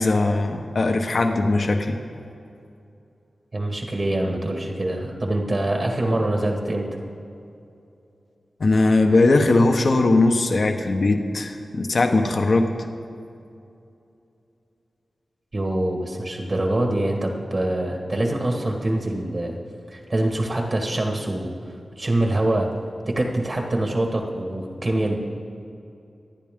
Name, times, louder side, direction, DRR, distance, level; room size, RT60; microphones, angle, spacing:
voice 1, 0.0-2.0 8.6-12.7, left 2 dB, 55° left, 5 dB, 1.1 m, -19 dB
voice 2, 3.5-6.9 15.5-19.6 19.9-21.5 22.0-22.7 23.1-25.1, right 1 dB, 35° right, 1 dB, 1.6 m, -24 dB
27.0 x 9.9 x 3.7 m, 2.6 s
wide cardioid pair, 125°, 0 cm